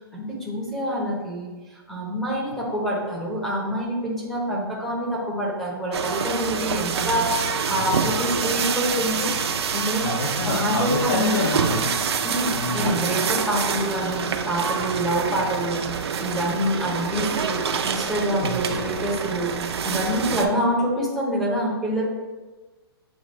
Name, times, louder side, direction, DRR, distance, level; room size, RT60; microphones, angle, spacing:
voice 1, 0.1-1.5 1.9-9.3 9.7-10.0 10.4-11.5 12.2-19.5 19.8-22.0, equal, ahead, -6 dB, 0.8 m, -26 dB
sound 1, 5.9-20.4, right 6 dB, 75° right, 0.5 m, -26 dB
voice 2, 10.0-11.9 12.5-13.0 18.4-18.9, left 3 dB, 55° left, -3 dB, 0.7 m, -28 dB
6.9 x 2.4 x 3.1 m, 1.3 s
hypercardioid pair, 150°, 14 cm